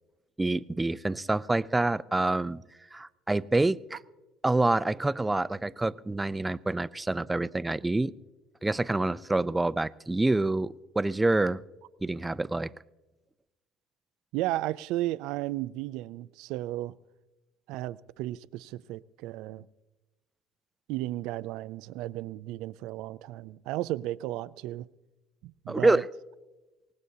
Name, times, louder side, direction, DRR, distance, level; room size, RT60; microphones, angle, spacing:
voice 1, 0.4-2.6 2.9-4.0 4.4-8.1 8.6-11.6 12.0-12.7 25.7-26.1, right 2 dB, 10° right, 0.4 m, -27 dB
voice 2, 14.3-16.9 17.7-19.7 20.9-24.9 25.4-26.0, right 16 dB, 75° right, 0.4 m, -34 dB
23.5 x 19.0 x 2.8 m
supercardioid pair, 100°, 0 cm